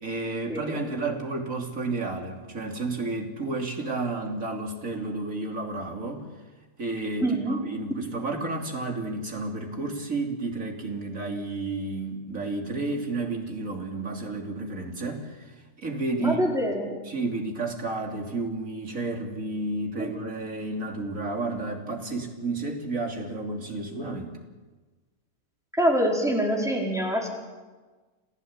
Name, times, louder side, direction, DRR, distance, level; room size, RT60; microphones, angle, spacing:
voice 1, 0.0-6.3 6.8-16.4 17.1-24.4, right 2 dB, 50° right, 2 dB, 3.4 m, -31 dB
voice 2, 7.2-7.6 16.2-17.0 20.0-20.1 25.8-27.3, right 1 dB, ahead, -1 dB, 4.6 m, -25 dB
28.0 x 15.0 x 8.8 m, 1.3 s
omnidirectional pair, 1.8 m